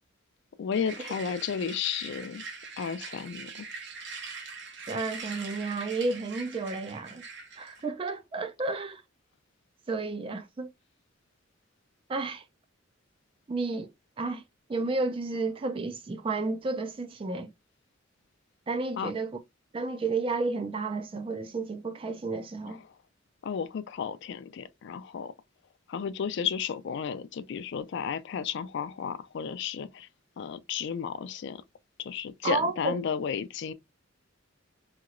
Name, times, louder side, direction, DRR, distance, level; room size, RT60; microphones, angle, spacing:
voice 1, 0.6-2.4 2.8-3.7 19.0-19.1 22.7-22.8 23.4-25.3 25.9-30.1 30.4-31.6 32.0-33.7, left 7 dB, 60° left, 0.3 m, -33 dB
sound 1, 0.7-7.9, right 4 dB, 60° right, 0.8 m, -43 dB
voice 2, 4.9-7.2 7.6-9.0 9.9-10.7 12.1-12.4 13.5-13.9 14.2-14.4 14.7-17.5 18.7-19.4 19.7-22.8 32.4-32.9, right 3 dB, 25° right, 0.3 m, -31 dB
2.9 x 2.9 x 2.4 m
head